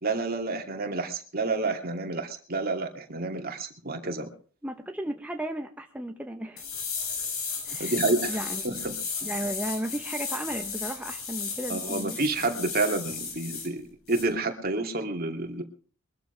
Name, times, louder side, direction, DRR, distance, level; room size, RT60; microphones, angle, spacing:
voice 1, 0.0-4.3 7.8-8.4 8.6-9.0 11.7-15.6, right 3 dB, 45° right, 4 dB, 2.6 m, -29 dB
voice 2, 4.6-6.6 7.7-8.0 8.3-8.6 9.2-12.2, right 1 dB, 5° right, 4 dB, 0.9 m, -34 dB
sound 1, 6.6-13.7 14.1-14.2, left 5 dB, 85° left, 6.0 m, -34 dB
23.0 x 13.5 x 3.3 m, 0.39 s
head